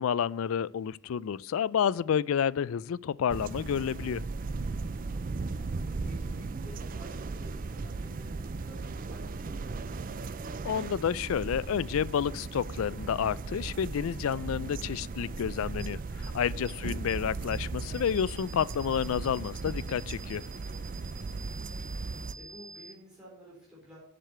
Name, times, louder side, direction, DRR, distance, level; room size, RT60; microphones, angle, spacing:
voice 1, 0.0-4.2 10.6-20.4, left 8 dB, 80° left, 0.3 m, -30 dB
sound 1, 3.3-22.3, right 3 dB, 40° right, 0.4 m, -37 dB
voice 2, 5.1-5.5 5.9-9.7 21.1-24.0, right 1 dB, 5° right, 3.4 m, -52 dB
sound 2, 15.8-15.9 16.2-16.3 16.7-16.8 17.1-17.2 17.5-17.6 17.9-22.9, right 4 dB, 60° right, 1.3 m, -48 dB
7.6 x 6.6 x 7.9 m
head